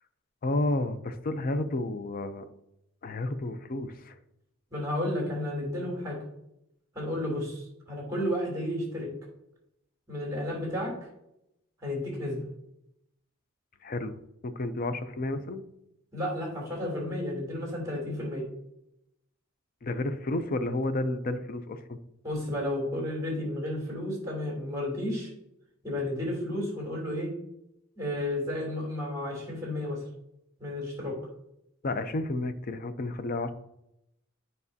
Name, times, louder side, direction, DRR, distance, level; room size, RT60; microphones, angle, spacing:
voice 1, 0.4-2.5 3.0-4.2 13.8-14.1 14.4-15.6 19.8-22.0 31.8-33.5, left 2 dB, 45° left, 10 dB, 0.5 m, -31 dB
voice 2, 4.7-6.2 6.9-9.1 10.1-10.9 11.8-12.4 16.1-18.5 22.2-25.3 25.8-27.3 28.0-30.0 30.6-31.2, left 1 dB, 15° right, -2 dB, 2.9 m, -32 dB
9.4 x 5.3 x 2.7 m, 0.81 s
head